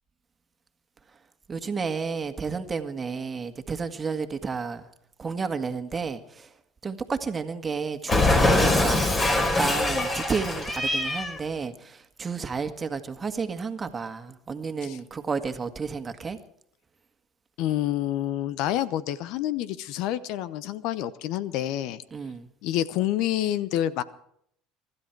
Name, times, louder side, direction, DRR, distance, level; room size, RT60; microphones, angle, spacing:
voice 1, 1.5-4.9 5.2-6.5 6.8-9.1 9.6-16.4 22.1-22.5, right 5 dB, 25° right, 1.8 m, -31 dB
Cat, 8.1-11.4, left 2 dB, 30° left, 4.5 m, -23 dB
voice 2, 17.6-22.0 22.6-24.0, left 12 dB, 65° left, 0.8 m, -28 dB
24.5 x 12.5 x 4.6 m
supercardioid pair, 85°, 0 cm